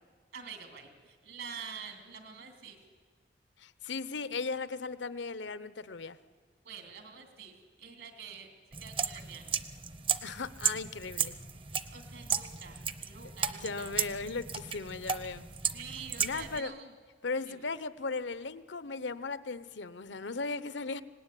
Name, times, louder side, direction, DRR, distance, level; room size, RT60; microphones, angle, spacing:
voice 1, 0.3-2.8 6.6-8.5 8.8-9.5 11.9-13.9 15.7-16.9 17.4-17.6, right 6 dB, 75° right, 4 dB, 2.9 m, -47 dB
voice 2, 3.6-6.2 10.2-11.3 13.6-15.5 16.2-16.7 17.2-21.0, left 4 dB, 80° left, 14 dB, 0.9 m, -37 dB
sound 1, 8.7-16.6, right 7 dB, 30° right, 0.7 m, -35 dB
25.0 x 18.5 x 9.9 m, 1.5 s
head